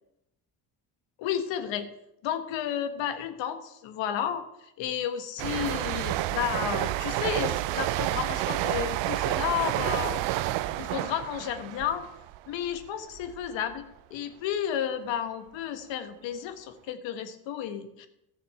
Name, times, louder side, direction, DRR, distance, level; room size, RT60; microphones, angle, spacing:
voice 1, 1.2-1.9 2.2-10.2 10.5-12.0 12.5-13.8 14.1-18.1, left 9 dB, 75° left, 9 dB, 1.4 m, -32 dB
sound 1, 5.4-12.9 13.2-13.5, right 15 dB, 70° right, 0.6 m, -30 dB
14.0 x 6.6 x 5.6 m, 0.84 s
hypercardioid pair, 55°, 45 cm